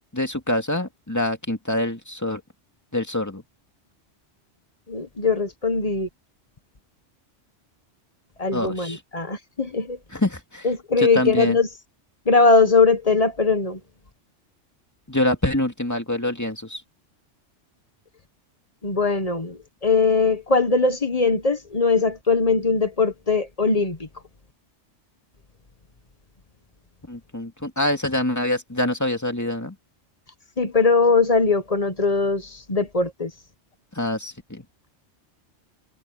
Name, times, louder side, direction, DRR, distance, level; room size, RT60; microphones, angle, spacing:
voice 1, 0.1-2.4 2.9-3.4 8.5-9.0 10.1-10.7 11.0-11.6 15.1-16.8 27.1-29.7 34.0-34.6, left 1 dB, 15° left, 2.3 m, -25 dB
voice 2, 4.9-6.1 8.4-10.0 10.6-11.7 12.3-13.8 18.8-24.1 30.6-33.3, left 4 dB, 30° left, 1.4 m, -20 dB
omnidirectional pair, 1.2 m